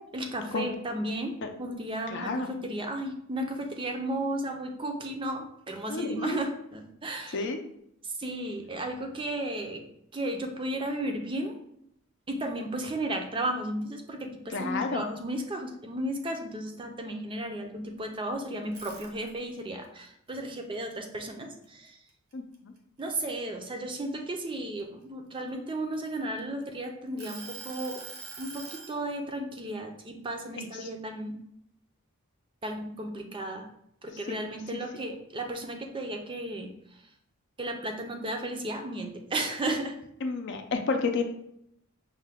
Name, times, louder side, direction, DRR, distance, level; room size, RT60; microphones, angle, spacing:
voice 1, 0.1-7.4 8.0-9.8 10.1-11.5 12.3-22.0 23.0-28.0 28.4-31.4 32.6-33.7 34.0-36.7 37.6-40.0, right 1 dB, 25° right, 4 dB, 0.5 m, -34 dB
voice 2, 2.1-2.5 5.9-6.4 7.3-7.6 14.5-15.0 22.3-22.7 30.5-30.9 34.3-34.4 34.7-34.8 40.2-41.3, left 4 dB, 55° left, 5 dB, 0.5 m, -31 dB
sound 1, 18.6-19.6 20.1-21.9 22.3-22.6 23.0-24.8 25.5-26.6 27.2-28.9, right 4 dB, 75° right, 0.9 m, -44 dB
5.5 x 2.2 x 3.4 m, 0.74 s
head